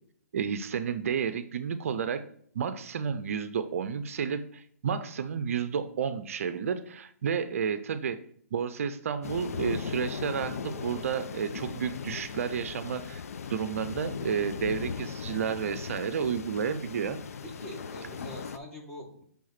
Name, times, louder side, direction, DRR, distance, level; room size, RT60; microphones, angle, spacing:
voice 1, 0.3-2.2 2.5-8.2 8.5-13.2 13.5-17.2, right 7 dB, 60° right, 11 dB, 0.5 m, -31 dB
sound 1, 9.2-18.6, left 6 dB, 65° left, 0.6 m, -38 dB
voice 2, 17.4-19.2, left 1 dB, 5° left, -1 dB, 1.6 m, -43 dB
6.3 x 3.6 x 5.7 m, 0.63 s
hypercardioid pair, 135°, 8 cm